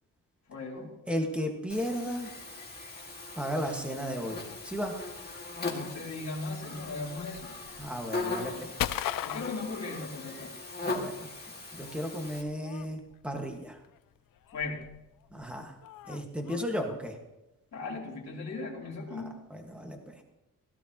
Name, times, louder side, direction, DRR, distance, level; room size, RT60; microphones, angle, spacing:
voice 1, 0.5-0.9 5.6-7.6 9.2-10.6 14.5-14.9 17.7-19.3, left 3 dB, 50° left, -3 dB, 3.4 m, -37 dB
voice 2, 1.1-2.3 3.3-4.9 7.8-8.7 10.8-11.3 11.7-13.8 15.3-15.7 16.0-17.2 19.1-20.2, equal, 5° right, 2 dB, 1.7 m, -34 dB
Buzz, 1.7-12.4, left 3 dB, 30° left, 2.1 m, -39 dB
sound 1, 6.7-10.6 10.9-16.6, left 12 dB, 75° left, 0.5 m, -39 dB
17.0 x 15.0 x 3.0 m, 0.94 s
wide cardioid pair, 155°, 34 cm